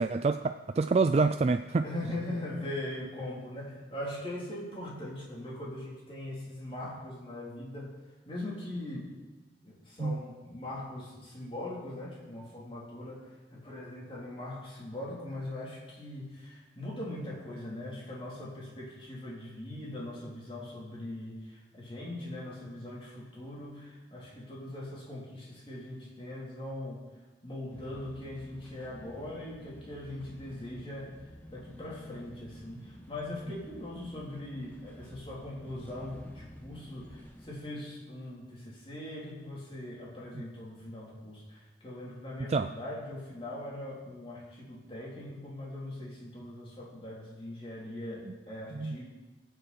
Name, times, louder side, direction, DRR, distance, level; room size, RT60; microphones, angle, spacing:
voice 1, 0.0-1.8 10.0-10.2 40.3-40.4 42.5-42.7 48.3-48.4 48.7-49.0, right 4 dB, 35° right, 8 dB, 0.3 m, -27 dB
voice 2, 1.8-7.9 8.3-9.1 9.6-27.0 27.4-31.1 31.5-49.0, left 1 dB, 30° left, -5 dB, 3.5 m, -41 dB
sound 1, 27.7-37.6, equal, 10° left, 1.2 m, -51 dB
21.0 x 7.9 x 4.4 m, 1.2 s
head